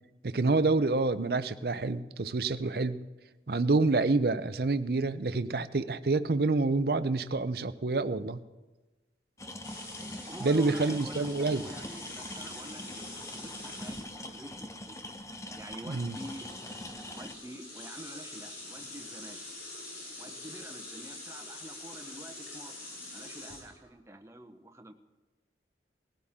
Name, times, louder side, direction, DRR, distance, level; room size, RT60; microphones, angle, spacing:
voice 1, 0.2-3.0 3.5-8.4 10.4-11.6 15.9-16.2, right 3 dB, 60° right, 13 dB, 0.6 m, -27 dB
sound 1, 9.4-17.4, left 1 dB, 15° left, 0.8 m, -43 dB
sound 2, 9.6-14.4 15.6-15.7 16.0-23.9, left 2 dB, 85° left, 5.7 m, -45 dB
voice 2, 10.2-15.0 15.5-16.5 17.1-19.4 20.2-24.9, right 1 dB, 15° right, 6 dB, 0.9 m, -47 dB
20.5 x 15.5 x 3.7 m, 1.2 s
head